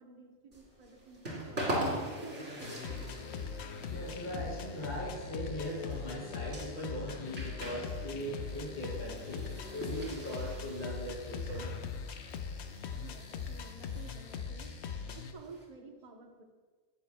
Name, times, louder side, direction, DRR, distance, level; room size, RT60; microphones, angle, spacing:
voice 1, 0.0-1.7 2.0-2.8 12.9-14.7 15.0-16.4, right 3 dB, 35° right, 1 dB, 1.0 m, -52 dB
sound 1, 0.5-15.7, equal, 70° right, 3.1 m, -42 dB
sound 2, 2.6-15.3, left 6 dB, 85° left, 0.9 m, -41 dB
voice 2, 3.8-11.8, equal, 45° left, -7 dB, 2.3 m, -40 dB
18.5 x 7.1 x 2.3 m, 1.4 s
omnidirectional pair, 1.1 m